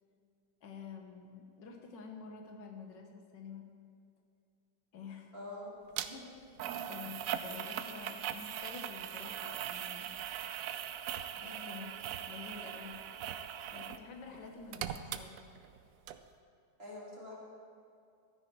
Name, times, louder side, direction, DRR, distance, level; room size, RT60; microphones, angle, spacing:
voice 1, 0.6-3.6 4.9-5.3 6.9-10.1 11.4-11.9 12.2-13.0 13.7-15.3, left 5 dB, 80° left, 2 dB, 1.7 m, -49 dB
voice 2, 5.3-5.7 6.0-6.2 11.4-11.8 16.8-17.3, left 1 dB, 35° right, -5 dB, 2.7 m, -46 dB
sound 1, 6.0-6.1 6.6-14.0 14.3-15.8 16.1-16.2, right 9 dB, 75° right, 0.7 m, -40 dB
12.5 x 10.0 x 4.6 m, 2.5 s
omnidirectional pair, 1.9 m